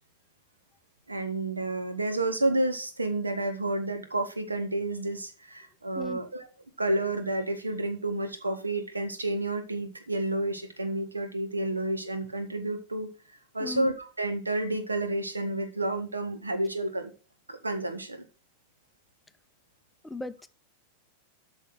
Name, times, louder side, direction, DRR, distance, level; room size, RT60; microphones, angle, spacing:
voice 1, 1.1-6.5 6.8-13.1 13.5-17.1 17.5-18.2, right 2 dB, 80° right, 1.5 m, -30 dB
voice 2, 20.0-20.5, left 2 dB, 10° left, 0.5 m, -37 dB
8.5 x 5.7 x 6.0 m
figure-of-eight pair, 90°, 0 cm